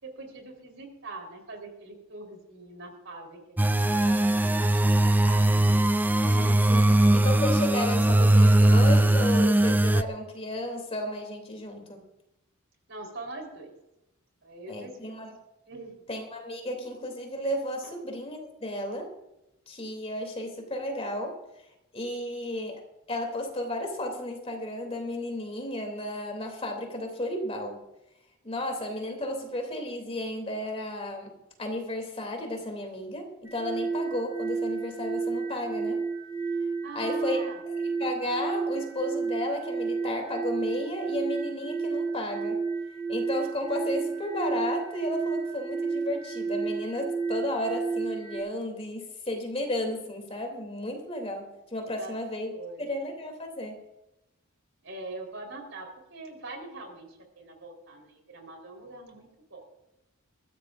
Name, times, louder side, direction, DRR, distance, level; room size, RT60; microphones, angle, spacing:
voice 1, 0.0-3.4 4.0-4.6 4.8-5.6 12.9-13.7 14.4-15.2 15.7-16.0 17.8-18.0 36.8-37.6 52.0-52.1 52.5-52.9 54.8-59.6, right 2 dB, 60° right, 3 dB, 4.0 m, -43 dB
sound 1, 3.6-10.0, right 1 dB, 10° right, 0.4 m, -20 dB
voice 2, 6.2-12.0 14.7-15.3 16.1-19.1 19.7-21.4 21.9-22.8 23.1-27.8 28.4-36.0 36.9-37.7 38.0-42.6 43.1-52.5 52.8-53.8, left 1 dB, 30° left, 3 dB, 2.9 m, -33 dB
sound 2, 33.5-48.4, right 4 dB, 85° right, 4.1 m, -31 dB
22.0 x 15.0 x 2.6 m, 0.91 s
head